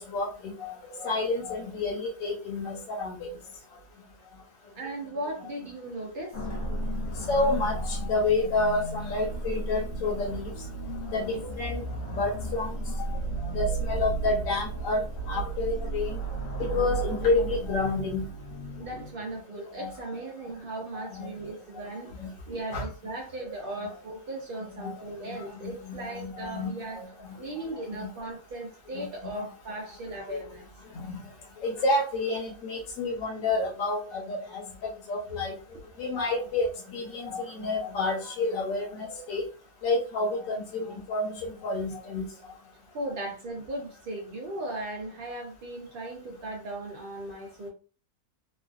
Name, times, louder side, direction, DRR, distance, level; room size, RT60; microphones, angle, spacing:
voice 1, 0.1-3.1 7.3-10.5 11.1-11.8 12.1-13.2 13.4-16.2 16.7-18.2 19.8-19.9 20.9-21.3 22.2-22.3 22.7-22.8 23.4-23.5 24.8-25.4 25.6-26.7 27.3-27.4 27.9-28.1 28.9-29.5 30.9-31.2 31.6-35.5 36.0-39.4 39.8-42.2, left 3 dB, 60° left, -4 dB, 1.3 m, -29 dB
voice 2, 4.7-6.5 18.8-22.2 22.5-27.0 27.4-30.7 42.9-47.7, right 1 dB, 70° right, 0 dB, 0.5 m, -37 dB
sound 1, 6.3-19.4, right 3 dB, 90° left, 1.3 m, -34 dB
3.2 x 2.3 x 2.4 m, 0.38 s
omnidirectional pair, 1.6 m